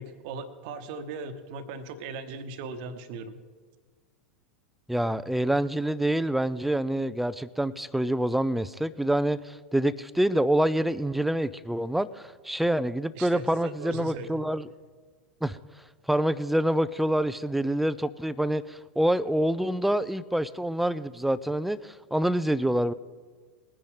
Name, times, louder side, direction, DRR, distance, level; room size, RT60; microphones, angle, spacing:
voice 1, 0.0-3.4 13.1-14.4, right 3 dB, 50° right, 9 dB, 1.1 m, -38 dB
voice 2, 4.9-14.7 15.4-15.6 16.1-22.9, right 1 dB, 5° right, 16 dB, 0.4 m, -26 dB
20.5 x 10.0 x 3.8 m, 1.5 s
figure-of-eight pair, 90°, 6 cm